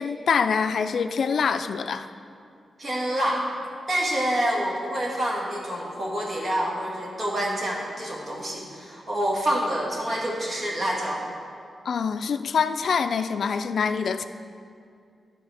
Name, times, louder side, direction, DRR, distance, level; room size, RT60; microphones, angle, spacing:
voice 1, 0.0-2.1 11.9-14.2, left 6 dB, 65° left, 10 dB, 0.3 m, -25 dB
voice 2, 2.8-3.4 3.9-11.2, equal, 40° right, -3 dB, 1.7 m, -27 dB
11.0 x 4.1 x 6.4 m, 2.4 s
wide cardioid pair, 120°, 0 cm